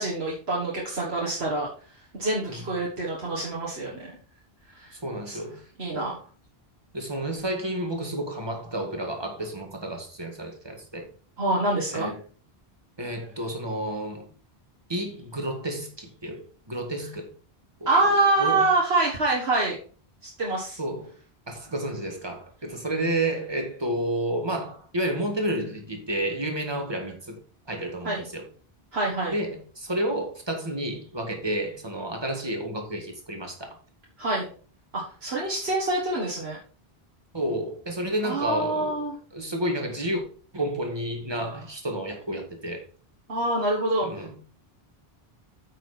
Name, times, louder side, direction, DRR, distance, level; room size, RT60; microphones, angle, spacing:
voice 1, 0.0-1.7 2.1-4.1 4.7-4.9 5.3-5.4 5.8-6.2 11.4-12.1 17.9-19.8 20.2-20.8 28.0-28.3 28.9-29.3 34.2-34.5 34.9-36.6 38.2-39.1 43.3-44.2, right 2 dB, 80° right, 1.9 m, -26 dB
voice 2, 4.9-5.6 5.9-6.1 6.9-11.1 11.9-12.2 13.0-14.3 14.9-16.4 16.7-17.3 17.8-18.7 20.8-21.1 21.5-27.4 27.7-28.4 29.3-33.8 37.3-39.0 39.3-40.2 40.5-42.8 44.0-44.4, right 1 dB, 25° right, 1.9 m, -31 dB
8.8 x 6.3 x 4.3 m
omnidirectional pair, 1.0 m